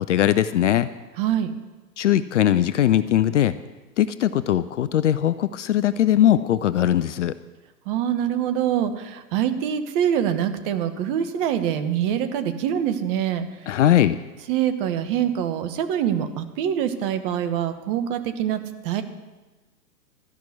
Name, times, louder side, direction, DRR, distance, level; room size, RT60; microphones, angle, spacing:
voice 1, 0.1-0.9 2.0-3.5 4.0-7.3 13.7-14.2, left 11 dB, 50° left, 15 dB, 0.5 m, -20 dB
voice 2, 1.2-1.5 7.9-13.4 14.5-19.0, right 9 dB, 35° right, 10 dB, 1.2 m, -24 dB
13.5 x 6.0 x 9.7 m, 1.2 s
figure-of-eight pair, 115°, 50 cm